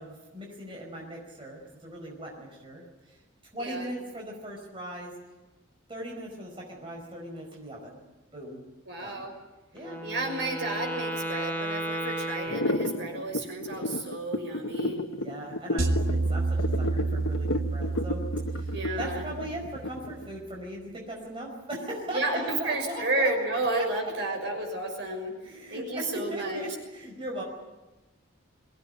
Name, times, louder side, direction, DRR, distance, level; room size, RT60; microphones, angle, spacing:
voice 1, 0.0-3.2 3.5-5.1 5.9-8.0 8.3-8.6 9.0-9.2 9.7-10.0 15.1-18.2 18.5-23.3 23.7-23.9 25.4-27.4, right 1 dB, 25° right, -1 dB, 5.0 m, -39 dB
voice 2, 3.6-3.9 8.9-9.3 10.0-15.0 18.7-19.3 22.1-25.3 25.7-26.6, right 2 dB, 55° right, 3 dB, 6.2 m, -31 dB
Wind instrument woodwind instrument, 9.8-13.4, right 1 dB, 10° left, 1.3 m, -34 dB
sound 1, 12.5-20.3, left 1 dB, 80° left, 1.5 m, -31 dB
sound 2, 15.8-20.1, right 3 dB, 85° right, 3.1 m, -29 dB
23.5 x 17.5 x 10.0 m, 1.1 s
head